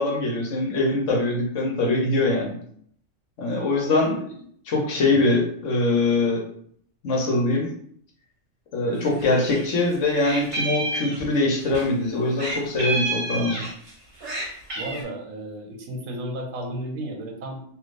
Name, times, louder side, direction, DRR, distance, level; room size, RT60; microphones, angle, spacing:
voice 1, 0.0-2.6 3.4-4.2 4.7-6.4 7.0-7.7 8.7-13.7, left 2 dB, 65° left, -1 dB, 1.1 m, -23 dB
voice 2, 3.5-4.1 4.7-4.8 14.7-17.6, right 1 dB, 75° right, 2 dB, 1.1 m, -34 dB
Meow, 9.0-9.7 9.9-11.9 12.4-13.9 14.2-15.0, right 2 dB, 55° right, 1.3 m, -29 dB
3.3 x 2.7 x 2.5 m, 0.63 s
omnidirectional pair, 1.4 m